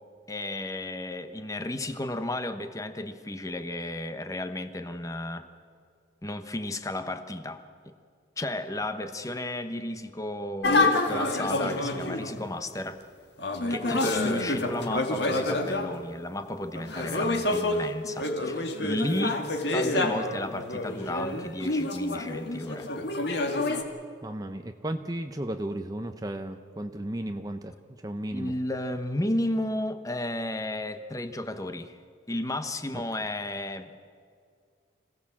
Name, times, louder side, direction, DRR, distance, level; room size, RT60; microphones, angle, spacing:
voice 1, 0.3-5.5 6.2-7.9 8.4-13.0 13.7-19.4 19.7-22.9 28.3-32.0 32.3-33.9, left 1 dB, 15° left, 9 dB, 1.0 m, -33 dB
sound 1, 10.6-12.4 13.4-16.0 16.7-23.8, left 2 dB, 60° left, 2.0 m, -28 dB
voice 2, 24.2-27.7 28.0-28.5, right 1 dB, 20° right, 7 dB, 0.7 m, -34 dB
26.0 x 17.0 x 7.4 m, 2.2 s
head